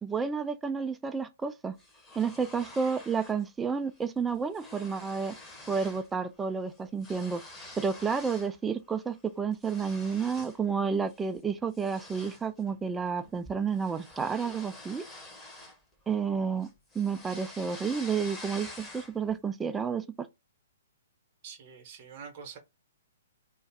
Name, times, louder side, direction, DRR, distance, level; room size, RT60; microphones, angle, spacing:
voice 1, 0.0-1.8 2.2-5.4 5.7-7.4 7.8-15.0 16.1-16.7 17.0-20.3, right 6 dB, 10° right, 0.4 m, -31 dB
sound 1, 1.8-3.4 3.8-4.0 4.3-6.1 6.4-8.6 9.0-10.6 11.1-11.3 11.7-16.3 16.6-19.3, left 2 dB, 10° left, 0.8 m, -47 dB
voice 2, 21.4-22.6, right 6 dB, 40° right, 0.8 m, -45 dB
2.4 x 2.3 x 3.2 m
figure-of-eight pair, 120°, 0 cm